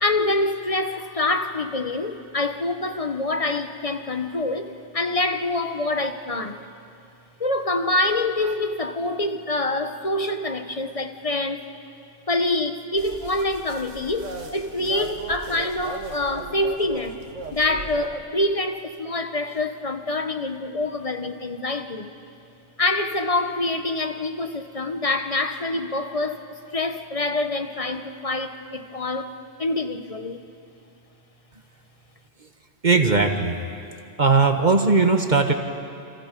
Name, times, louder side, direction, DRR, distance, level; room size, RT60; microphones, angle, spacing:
voice 1, 0.0-6.7 7.4-11.7 12.3-17.2 17.5-22.1 22.8-29.3 29.6-30.4, left 2 dB, 30° left, 8 dB, 1.1 m, -26 dB
sound 1, 13.0-18.1, right 3 dB, 80° right, 2.1 m, -37 dB
voice 2, 32.8-33.6 34.2-35.5, right 4 dB, 40° right, 5 dB, 1.4 m, -18 dB
29.5 x 27.0 x 5.3 m, 2.5 s
omnidirectional pair, 1.3 m